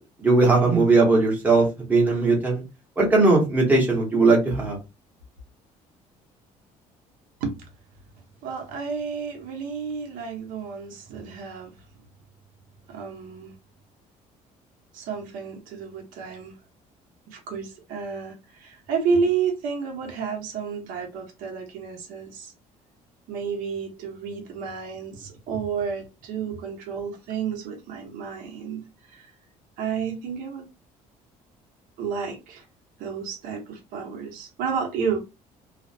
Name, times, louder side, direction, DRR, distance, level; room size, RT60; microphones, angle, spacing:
voice 1, 0.2-2.6 3.0-4.8, right 3 dB, 10° right, 0.8 m, -19 dB
voice 2, 8.4-11.8 12.9-13.6 14.9-16.5 17.3-22.5 23.3-29.3 29.8-30.7 32.0-32.6 33.0-35.2, right 6 dB, 75° right, 0.8 m, -31 dB
2.4 x 2.0 x 2.6 m
cardioid pair, 165°, 14 cm